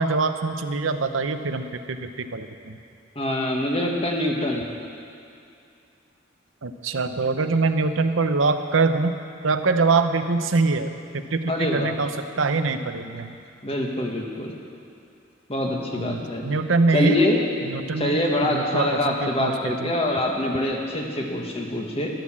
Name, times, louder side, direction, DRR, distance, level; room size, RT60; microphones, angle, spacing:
voice 1, 0.0-2.8 6.6-9.1 9.4-13.4 16.0-17.2 17.6-19.9, right 3 dB, 85° right, 8 dB, 0.8 m, -24 dB
voice 2, 3.1-4.7 11.5-12.0 13.6-14.5 15.5-16.4 16.9-17.4 18.0-22.1, left 1 dB, 30° left, 0 dB, 1.8 m, -24 dB
12.5 x 12.0 x 7.4 m, 2.5 s
head